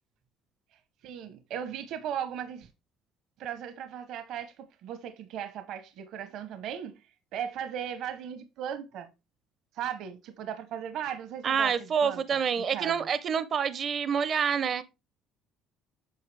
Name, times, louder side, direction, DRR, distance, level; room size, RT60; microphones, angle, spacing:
voice 1, 1.0-2.7 3.4-9.1 9.7-11.7 12.0-12.4 12.7-13.1, right 9 dB, 60° right, 0.8 m, -37 dB
voice 2, 11.4-14.8, right 7 dB, 35° right, 0.5 m, -27 dB
8.5 x 5.5 x 3.2 m
cardioid pair, 155°, 0 cm